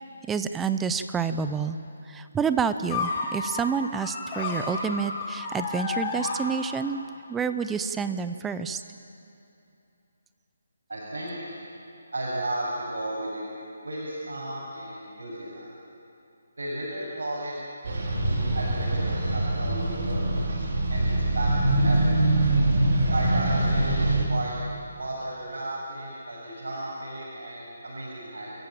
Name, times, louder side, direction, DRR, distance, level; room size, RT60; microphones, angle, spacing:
voice 1, 0.3-1.8 2.1-7.0 7.3-8.8, right 6 dB, 5° right, 10 dB, 0.5 m, -28 dB
sound 1, 2.9-7.0, left 3 dB, 20° left, 3.3 m, -32 dB
voice 2, 10.9-11.5 12.1-13.4 13.8-15.7 16.6-17.5 18.3-20.4 20.9-22.4 23.1-24.6 25.0-28.5, right 1 dB, 90° right, -7 dB, 7.1 m, -34 dB
sound 2, 17.8-24.2, right 2 dB, 55° right, 4.8 m, -24 dB
27.0 x 15.0 x 9.0 m, 2.8 s
hypercardioid pair, 170°, 0 cm